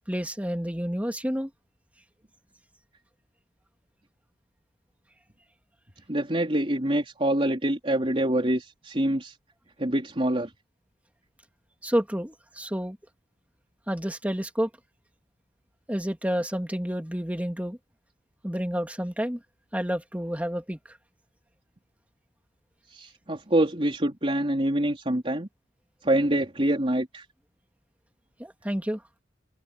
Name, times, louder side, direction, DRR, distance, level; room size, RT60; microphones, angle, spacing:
voice 1, 0.1-1.5 11.8-13.0 13.9-14.7 15.9-17.8 18.4-19.4 19.7-21.0 28.4-29.0, equal, 10° right, 2.7 m, -29 dB
voice 2, 6.1-9.4 9.8-10.5 22.9-25.5 26.0-27.2, right 1 dB, 30° right, 3.9 m, -25 dB
head